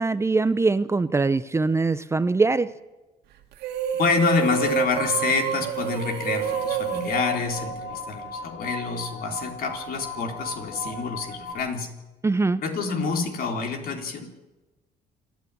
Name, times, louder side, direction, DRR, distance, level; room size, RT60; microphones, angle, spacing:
voice 1, 0.0-2.7 12.2-12.6, right 3 dB, 15° right, 14 dB, 0.6 m, -22 dB
sound 1, 3.5-8.2, right 9 dB, 80° right, 2.2 m, -28 dB
voice 2, 3.9-11.9 12.6-14.3, left 5 dB, 60° left, 3 dB, 3.8 m, -27 dB
sound 2, 6.4-11.5, left 2 dB, 90° left, 6.8 m, -37 dB
27.5 x 9.4 x 9.9 m, 1.1 s
cardioid pair, 110°, 17 cm